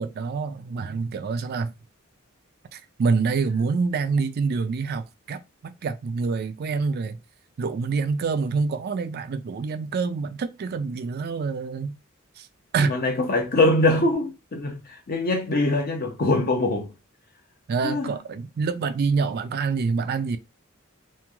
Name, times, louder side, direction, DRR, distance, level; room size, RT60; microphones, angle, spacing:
voice 1, 0.0-1.7 2.7-7.2 7.6-12.0 12.4-12.5 12.7-13.0 17.7-20.4, right 4 dB, 50° right, 0.3 m, -26 dB
voice 2, 12.8-16.9 17.8-18.2, left 2 dB, 45° left, 0.6 m, -23 dB
3.0 x 2.5 x 2.3 m
head